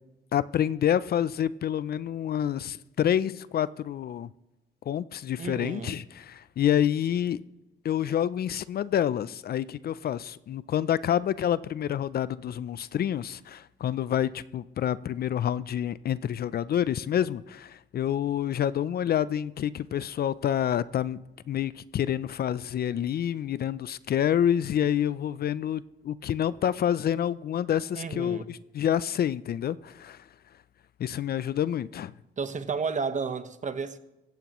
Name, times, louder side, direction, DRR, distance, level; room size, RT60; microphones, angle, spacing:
voice 1, 0.3-4.3 4.9-7.4 7.8-21.2 21.5-30.2 31.0-32.1, left 10 dB, 50° left, 0.4 m, -28 dB
voice 2, 5.4-6.0 27.9-28.5 32.4-34.0, right 5 dB, 40° right, 1.1 m, -32 dB
16.0 x 15.0 x 3.1 m
cardioid pair, 90°, 20 cm